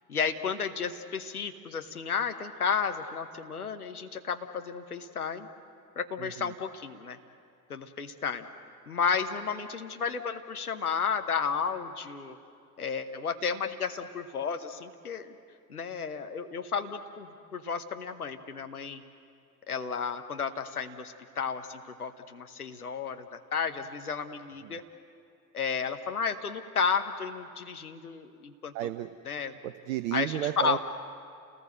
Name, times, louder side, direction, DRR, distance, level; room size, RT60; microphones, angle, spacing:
voice 1, 0.1-5.5 6.0-7.2 7.7-8.5 8.9-12.4 12.8-15.3 15.7-19.0 19.7-24.8 25.5-28.7 29.2-29.5 30.1-30.8, left 6 dB, 85° left, 7 dB, 1.1 m, -32 dB
voice 2, 6.2-6.5 24.6-24.8 28.7-29.1 29.6-30.8, right 13 dB, 65° right, 12 dB, 0.8 m, -33 dB
29.5 x 19.0 x 7.9 m, 2.4 s
figure-of-eight pair, 65°, 43 cm